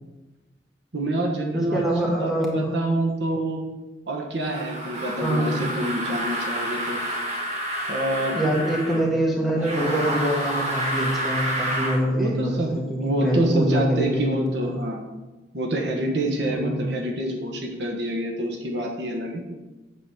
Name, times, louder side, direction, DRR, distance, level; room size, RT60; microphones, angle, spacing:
voice 1, 0.9-3.6 4.1-7.0 7.9-8.3 12.2-15.0 15.5-19.4, right 1 dB, 65° right, 1 dB, 1.3 m, -27 dB
voice 2, 1.7-2.7 5.2-5.6 8.2-14.8 16.4-16.9, right 1 dB, ahead, -3 dB, 1.8 m, -25 dB
sound 1, 4.4-9.0 9.6-12.0, right 1 dB, 40° right, 1.8 m, -29 dB
8.6 x 4.1 x 7.2 m, 1.1 s
head